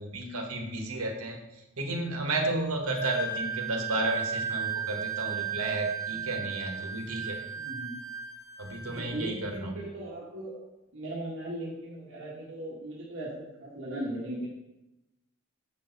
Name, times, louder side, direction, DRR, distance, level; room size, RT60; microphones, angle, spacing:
voice 1, 0.0-1.4 1.8-7.4 8.6-9.8, right 2 dB, 85° right, 1 dB, 1.5 m, -32 dB
Wind instrument woodwind instrument, 3.0-9.1, right 7 dB, 15° left, 3.3 m, -35 dB
voice 2, 7.6-8.0 8.8-10.6 10.9-14.5, right 1 dB, 60° right, -5 dB, 1.7 m, -38 dB
8.1 x 6.3 x 4.0 m, 0.96 s
head